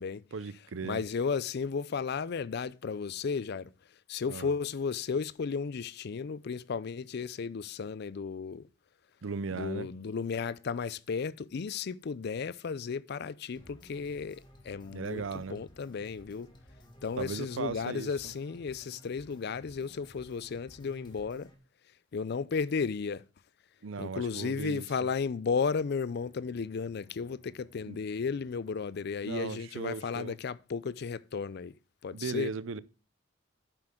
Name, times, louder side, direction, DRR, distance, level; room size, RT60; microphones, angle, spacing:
voice 1, 0.3-1.0 4.3-4.5 9.2-9.9 14.9-15.6 17.2-18.3 23.8-24.9 27.8-28.0 29.2-30.4 32.1-32.8, right 5 dB, 90° right, 0.6 m, -37 dB
voice 2, 0.8-3.7 4.1-8.7 9.5-16.5 17.0-21.5 22.1-23.2 24.0-31.7 32.0-32.5, left 5 dB, 60° left, 0.4 m, -34 dB
sound 1, 13.5-21.5, equal, 25° left, 1.8 m, -56 dB
Bowed string instrument, 26.0-30.0, right 1 dB, 30° right, 3.1 m, -65 dB
9.2 x 7.6 x 3.7 m
head